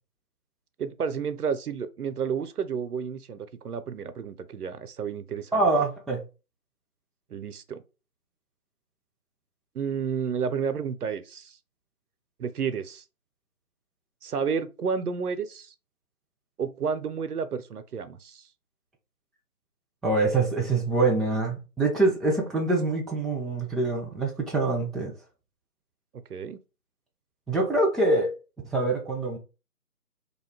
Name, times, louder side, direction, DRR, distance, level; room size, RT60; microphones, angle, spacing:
voice 1, 0.8-5.6 7.3-7.8 9.7-11.6 12.4-13.0 14.2-15.7 16.6-18.5 26.3-26.6, right 6 dB, 75° right, 0.5 m, -31 dB
voice 2, 5.5-6.2 20.0-25.1 27.5-28.3 28.7-29.4, right 2 dB, ahead, 0.4 m, -25 dB
2.5 x 2.3 x 3.4 m
figure-of-eight pair, 155°, 46 cm